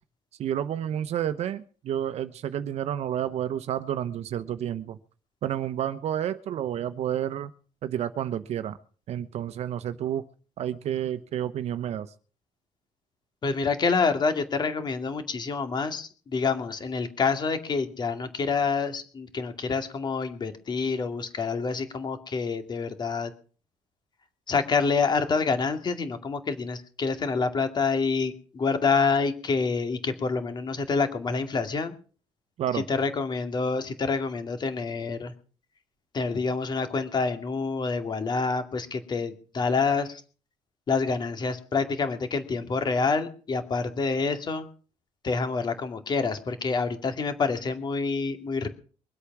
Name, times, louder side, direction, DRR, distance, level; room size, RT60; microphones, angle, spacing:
voice 1, 0.4-5.0 5.4-7.5 7.8-8.8 9.1-10.3 10.6-12.1 32.6-32.8, right 10 dB, 60° right, 12 dB, 1.0 m, -30 dB
voice 2, 13.4-23.3 24.5-32.0 32.7-35.3 36.1-40.2 40.9-44.7 45.2-48.7, left 4 dB, 35° left, 8 dB, 2.3 m, -27 dB
23.0 x 8.4 x 6.0 m, 0.42 s
cardioid pair, 130°, 12 cm